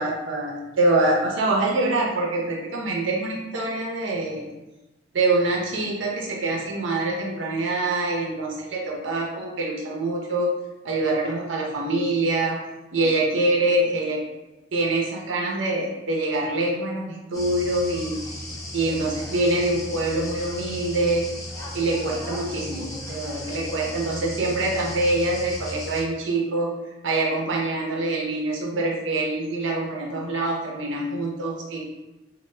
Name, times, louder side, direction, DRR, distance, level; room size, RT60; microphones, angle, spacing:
voice 1, 0.0-4.5 5.1-10.5 10.8-12.6 12.9-14.2 14.7-18.2 18.7-21.2 21.7-26.7 27.0-31.8, right 2 dB, 75° right, -2 dB, 0.6 m, -25 dB
sound 1, 17.3-26.0, left 1 dB, 15° left, 0.6 m, -35 dB
3.1 x 2.1 x 3.2 m, 1.1 s
head